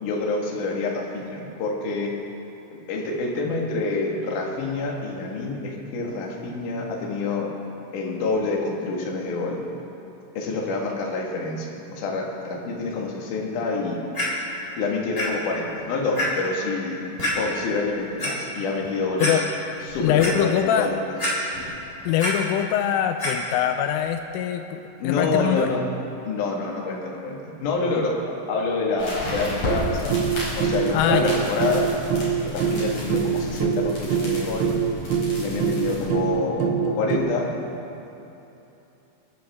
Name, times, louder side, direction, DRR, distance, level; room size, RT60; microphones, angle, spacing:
voice 1, 0.0-2.1 2.9-7.5 7.9-9.6 10.3-14.0 14.8-17.1 17.3-19.4 19.9-21.1 25.0-25.8 26.2-30.1 30.6-31.9 32.4-34.7 35.4-37.5, left 3 dB, 55° left, -1 dB, 2.4 m, -27 dB
Clock, 14.1-14.2 15.2-15.3 15.7-15.8 16.1-16.2 17.2-17.3 18.0-18.3 18.8-18.9 19.2-19.3 19.8-20.3 21.2-21.7 22.0-22.3 23.2-23.3 24.0-24.1, left 1 dB, 15° left, 3.0 m, -26 dB
voice 2, 20.0-20.9 22.1-25.7 30.9-31.3, left 10 dB, 85° left, 7 dB, 3.1 m, -23 dB
sound 1, 29.0-36.1, left 1 dB, 35° left, 5.1 m, -33 dB
sound 2, 29.7-37.2, right 7 dB, 80° right, 3.5 m, -25 dB
27.0 x 11.5 x 3.6 m, 2.9 s
omnidirectional pair, 5.8 m